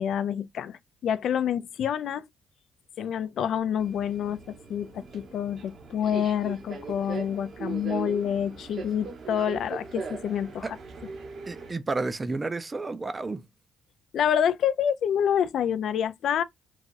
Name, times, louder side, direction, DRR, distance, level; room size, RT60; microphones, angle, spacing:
voice 1, 0.0-2.3 3.0-10.8 14.1-16.4, left 9 dB, 70° left, 0.3 m, -27 dB
Subway metro underground, 3.8-11.7, right 4 dB, 55° right, 0.7 m, -39 dB
voice 2, 11.5-13.4, right 3 dB, 25° right, 0.4 m, -31 dB
3.1 x 2.3 x 2.5 m
cardioid pair, 90°, 0 cm